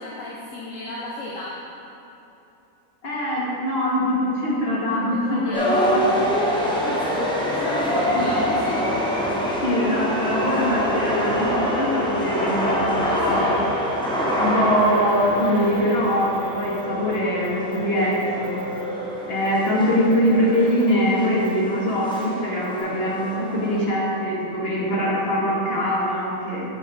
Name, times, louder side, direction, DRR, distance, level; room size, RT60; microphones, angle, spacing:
voice 1, 0.0-1.6 5.1-5.9 6.7-9.1 13.0-13.6, left 2 dB, 65° left, -4 dB, 1.1 m, -33 dB
voice 2, 3.0-6.1 8.2-8.3 9.6-13.7 14.4-18.6 19.3-26.6, equal, 45° left, -5 dB, 1.8 m, -23 dB
sound 1, 5.5-23.8, equal, 5° left, 0.9 m, -25 dB
sound 2, 14.8-16.8 17.1-17.2 17.4-17.8 18.1-18.8 19.4-19.7 20.1-20.9 21.4-21.5 22.1-22.2 22.6-22.8, right 3 dB, 25° right, 1.9 m, -46 dB
8.5 x 7.3 x 3.4 m, 2.9 s
omnidirectional pair, 1.5 m